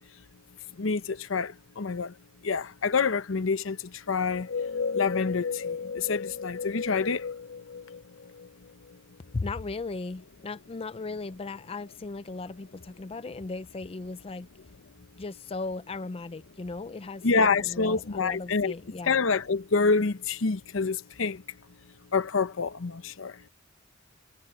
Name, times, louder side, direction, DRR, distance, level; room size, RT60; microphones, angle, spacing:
voice 1, 0.8-2.1 2.4-4.5 4.9-7.3 17.2-18.7 19.0-21.4 22.1-23.4, left 4 dB, 70° left, 0.8 m, -27 dB
sound 1, 4.3-8.9, left 5 dB, 90° left, 1.8 m, -34 dB
voice 2, 9.3-14.5 15.2-19.2, left 3 dB, 30° left, 0.4 m, -37 dB
head